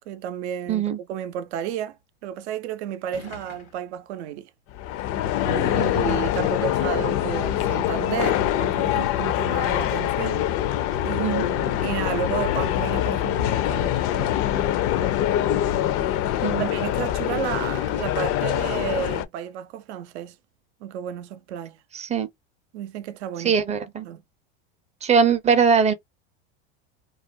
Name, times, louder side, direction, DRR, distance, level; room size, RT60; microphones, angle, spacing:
voice 1, 0.1-2.0 2.2-4.5 5.7-10.5 11.0-15.1 16.6-20.4 20.8-21.8 22.7-23.5 24.0-24.2, right 10 dB, 80° right, 0.5 m, -32 dB
sound 1, 2.5-2.6 3.1-3.9 4.8-4.9 6.1-6.6 7.5-7.6 8.3-9.1, left 5 dB, 90° left, 1.1 m, -43 dB
sound 2, 4.7-19.2, left 12 dB, 45° left, 0.4 m, -24 dB
voice 2, 5.4-5.8 11.2-11.4 16.4-16.7 21.9-22.3 23.4-24.1 25.0-25.9, right 6 dB, 20° right, 0.5 m, -21 dB
2.4 x 2.1 x 2.6 m
supercardioid pair, 105°, 33 cm